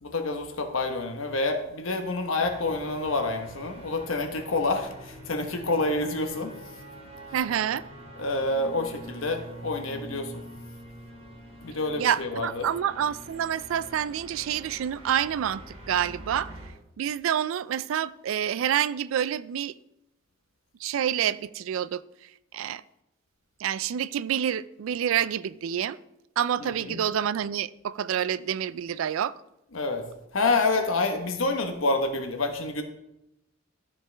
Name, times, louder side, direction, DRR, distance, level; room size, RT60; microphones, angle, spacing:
voice 1, 0.0-6.5 8.2-10.3 11.6-12.7 26.6-27.0 29.7-30.0 30.3-32.8, left 2 dB, 75° left, 1.1 m, -28 dB
sound 1, 2.4-16.7, right 1 dB, 25° right, 1.6 m, -45 dB
voice 2, 7.3-7.9 12.0-16.5 17.0-19.7 20.8-22.0 22.5-22.8 23.6-26.0 26.4-29.3, right 9 dB, 70° right, 0.3 m, -28 dB
13.0 x 4.8 x 3.4 m
head